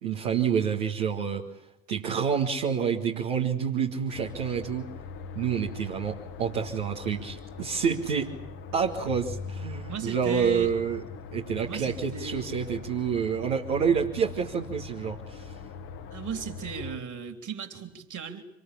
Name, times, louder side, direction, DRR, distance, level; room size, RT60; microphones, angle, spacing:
voice 1, 0.0-1.4 1.9-4.9 5.4-8.4 8.7-11.0 11.3-15.6, right 7 dB, 75° right, -2 dB, 1.9 m, -28 dB
sound 1, 4.1-17.0, left 5 dB, 60° left, 1.8 m, -41 dB
voice 2, 9.9-10.7 11.6-12.5 16.1-18.4, right 7 dB, 50° right, 6 dB, 3.4 m, -37 dB
26.0 x 21.0 x 8.6 m, 0.87 s
figure-of-eight pair, 45°, 40 cm